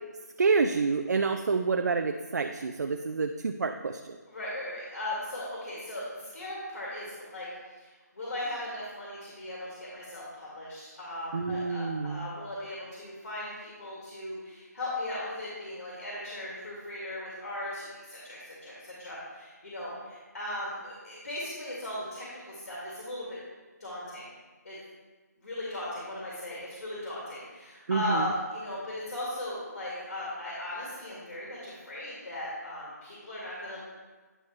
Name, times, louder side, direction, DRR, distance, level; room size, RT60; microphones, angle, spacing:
voice 1, 0.4-4.2 11.3-12.3 27.9-28.3, right 4 dB, 70° right, 6 dB, 0.4 m, -28 dB
voice 2, 4.3-23.4 23.8-24.3 24.6-24.8 25.4-33.8, left 1 dB, 70° left, -6 dB, 2.2 m, -37 dB
9.9 x 4.7 x 3.2 m, 1.3 s
figure-of-eight pair, 170°, 10 cm